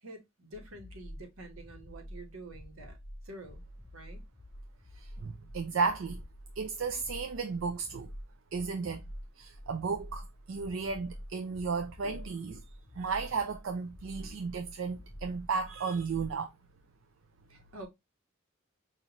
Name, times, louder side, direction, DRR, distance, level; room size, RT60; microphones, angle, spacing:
voice 1, 0.0-3.0 3.2-3.6 3.9-4.2 17.5-17.9, right 1 dB, 85° right, 1.2 m, -48 dB
sound 1, 0.5-16.4, equal, 15° left, 0.4 m, -48 dB
voice 2, 5.0-6.2 6.6-8.1 8.5-9.0 9.4-12.6 13.0-16.5, right 5 dB, 65° right, 0.4 m, -34 dB
5.4 x 2.6 x 2.9 m
head